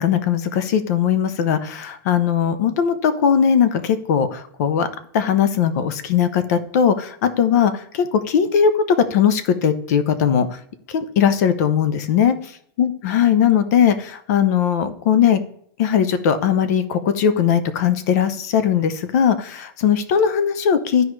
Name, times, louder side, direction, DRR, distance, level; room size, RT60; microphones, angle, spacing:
voice 1, 0.0-4.9 5.1-10.5 10.9-12.4 12.8-15.4 15.8-21.1, left 8 dB, 45° left, 12 dB, 0.6 m, -19 dB
12.5 x 4.6 x 3.1 m, 0.65 s
supercardioid pair, 175°, 12 cm